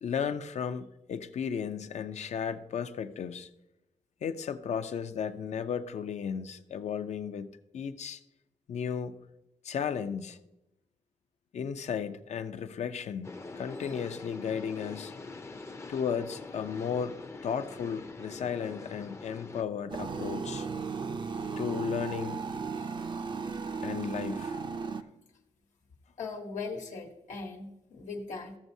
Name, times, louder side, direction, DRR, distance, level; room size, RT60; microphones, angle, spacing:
voice 1, 0.0-3.5 4.2-8.2 8.7-9.1 9.6-10.4 11.5-15.1 15.9-20.7 21.2-22.4 23.8-24.6, left 7 dB, 65° left, 0.6 m, -34 dB
sound 1, 13.2-19.6, left 3 dB, 20° left, 0.5 m, -44 dB
sound 2, 19.9-25.0, right 5 dB, 40° right, 0.4 m, -35 dB
voice 2, 26.2-28.6, left 4 dB, 85° left, 1.2 m, -39 dB
14.0 x 7.1 x 2.7 m
wide cardioid pair, 130°, 12 cm